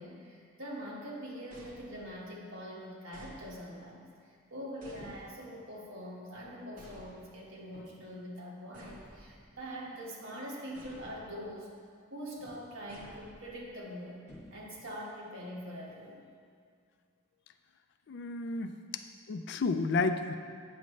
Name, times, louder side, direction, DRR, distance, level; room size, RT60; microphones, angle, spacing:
voice 1, 0.0-11.7 12.1-16.3 18.5-18.7, equal, 80° right, -4 dB, 1.6 m, -44 dB
sound 1, 1.5-2.4 3.1-3.9 4.8-5.7 6.8-7.6 8.7-9.8 10.7-11.5 12.9-13.8, equal, 45° right, 1.2 m, -54 dB
sound 2, 5.0-5.4 6.3-6.7 7.7-8.2 9.3-9.5 11.0-11.5 12.4-12.9 14.3-15.0, left 1 dB, 35° left, 1.9 m, -55 dB
voice 2, 18.1-19.0 19.3-20.4, left 3 dB, 60° left, 9 dB, 0.4 m, -31 dB
8.6 x 6.4 x 3.2 m, 2.2 s
head